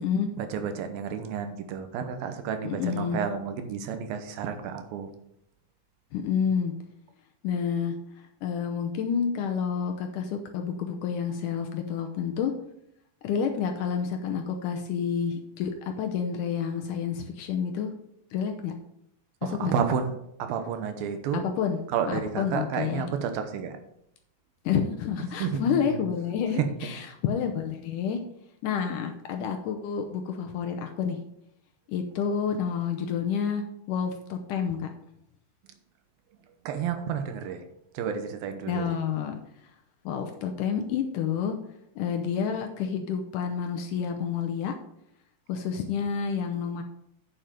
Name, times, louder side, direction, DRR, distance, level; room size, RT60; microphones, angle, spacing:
voice 1, 0.4-5.1 19.4-21.4 21.9-23.8 25.4-26.0 26.6-26.7 36.7-37.6 37.9-38.9, right 7 dB, 80° right, 8 dB, 2.7 m, -31 dB
voice 2, 2.6-3.2 6.1-6.7 7.4-8.0 8.4-12.5 13.2-15.7 16.0-17.9 18.3-18.7 19.4-19.7 21.3-21.8 22.1-23.1 24.7-28.2 28.6-31.2 31.9-34.9 38.7-39.4 40.1-41.6 42.0-44.7 45.5-46.8, left 7 dB, 75° left, 4 dB, 2.1 m, -29 dB
8.9 x 7.1 x 5.1 m, 0.76 s
omnidirectional pair, 4.3 m